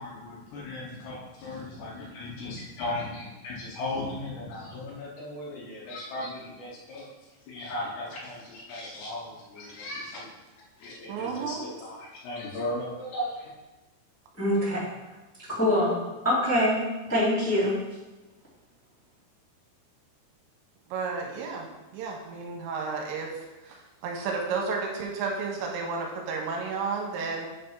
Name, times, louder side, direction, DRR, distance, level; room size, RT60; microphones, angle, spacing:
voice 1, 0.0-7.1 7.5-10.3 10.8-13.5, left 1 dB, 70° left, -3 dB, 2.8 m, -36 dB
voice 2, 11.1-11.6 14.8-14.9 20.9-21.7 21.9-27.5, right 4 dB, 80° right, 0 dB, 3.0 m, -32 dB
voice 3, 14.4-14.8 15.5-16.8 17.1-17.7, left 1 dB, 20° left, -11 dB, 0.4 m, -24 dB
8.4 x 3.4 x 5.3 m, 1.1 s
omnidirectional pair, 5.4 m